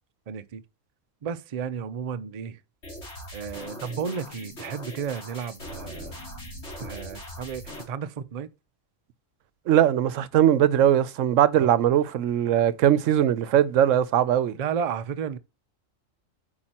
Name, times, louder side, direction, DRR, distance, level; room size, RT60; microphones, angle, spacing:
voice 1, 0.3-0.6 1.2-2.6 3.3-6.1 6.8-8.5 11.6-11.7 14.6-15.4, right 7 dB, 60° right, 0.4 m, -33 dB
sound 1, 2.8-7.8, equal, 55° left, 3.6 m, -40 dB
voice 2, 9.7-14.6, right 10 dB, 75° right, 1.0 m, -20 dB
8.7 x 4.7 x 2.9 m
omnidirectional pair, 1.4 m